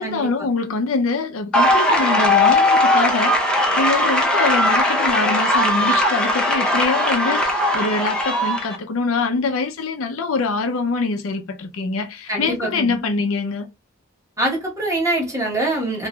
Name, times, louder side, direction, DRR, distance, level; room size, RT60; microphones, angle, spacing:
voice 1, 0.0-13.7, left 4 dB, 75° left, 0.5 m, -24 dB
sound 1, 1.5-8.7, left 1 dB, 5° left, 0.6 m, -18 dB
voice 2, 12.3-13.2 14.4-16.1, right 1 dB, 15° right, 1.1 m, -24 dB
3.0 x 2.5 x 2.2 m
head